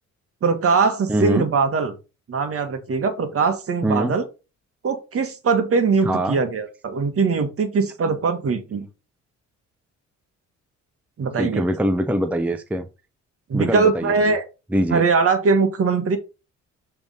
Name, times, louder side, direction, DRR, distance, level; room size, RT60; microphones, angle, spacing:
voice 1, 0.4-1.9 2.3-4.2 4.8-8.9 11.2-11.6 13.5-14.4 14.9-16.2, right 4 dB, 50° right, 1.5 m, -21 dB
voice 2, 1.1-1.5 3.8-4.2 6.0-6.4 11.4-12.9 13.5-14.4 14.7-15.0, right 1 dB, 5° right, 0.5 m, -23 dB
6.9 x 3.5 x 4.1 m
cardioid pair, 90°, 30 cm